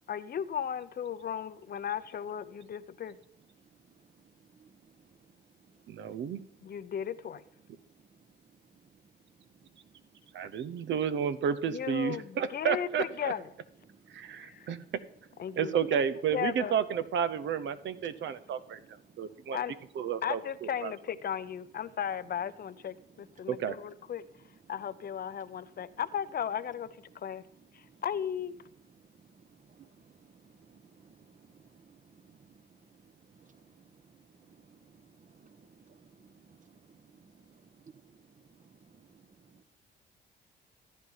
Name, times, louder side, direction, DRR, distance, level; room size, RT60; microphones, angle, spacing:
voice 1, 0.1-3.2 6.6-7.4 11.7-13.5 14.4-14.7 15.4-16.0 16.3-16.7 19.5-19.7 20.2-24.2 24.7-26.9 27.1-27.4 27.7-28.5, left 8 dB, 50° left, 14 dB, 0.7 m, -36 dB
voice 2, 5.9-6.4 10.3-13.3 14.1-14.8 15.6-18.8 19.2-19.6 20.0-20.4 20.8-20.9 23.5-23.8, right 8 dB, 65° right, 14 dB, 0.8 m, -31 dB
voice 3, 35.2-36.4 36.9-37.0 39.0-39.1, right 6 dB, 40° right, 12 dB, 1.1 m, -58 dB
14.0 x 9.3 x 5.7 m, 0.69 s
cardioid pair, 90°, 20 cm